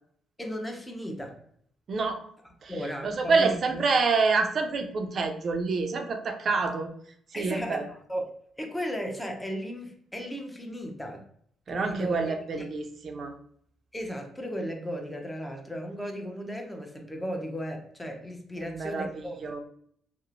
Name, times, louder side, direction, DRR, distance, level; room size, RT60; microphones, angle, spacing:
voice 1, 0.4-1.4 2.7-3.8 7.3-8.2 8.6-11.3 11.7-12.6 13.9-19.6, equal, 10° left, 3 dB, 0.6 m, -35 dB
voice 2, 1.9-2.3 2.6-6.9 7.3-7.9 11.7-13.3 18.5-19.6, right 4 dB, 50° right, 5 dB, 0.4 m, -27 dB
2.9 x 2.0 x 2.4 m, 0.63 s
cardioid pair, 90°, 0 cm